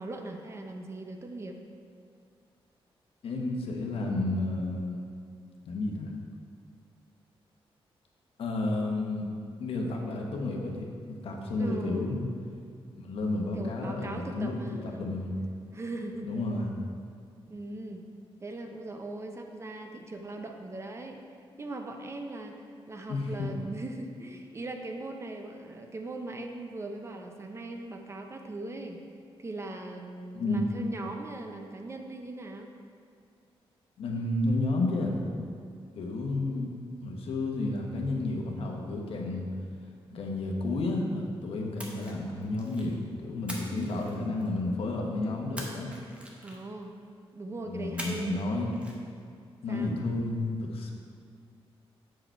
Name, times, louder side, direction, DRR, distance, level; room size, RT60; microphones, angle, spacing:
voice 1, 0.0-1.6 11.6-12.2 13.5-15.1 15.7-16.3 17.5-18.0 18.4-21.2 21.6-29.0 29.4-32.7 43.7-44.4 46.4-48.4 49.7-49.9, right 2 dB, 30° right, 4 dB, 0.5 m, -39 dB
voice 2, 3.2-5.0 5.7-6.1 8.4-9.2 9.6-12.2 13.0-14.5 14.8-15.3 16.2-16.7 23.1-23.5 30.3-30.7 34.0-35.2 35.9-36.7 37.0-39.5 40.1-45.9 47.7-48.9 49.6-50.9, left 2 dB, 75° left, 0 dB, 1.0 m, -31 dB
Splash splatter, 41.8-42.9 43.5-44.7 45.6-46.8 48.0-48.5 48.7-48.9, equal, 10° right, 0.9 m, -42 dB
7.6 x 4.7 x 4.5 m, 2.3 s
wide cardioid pair, 140°, 10 cm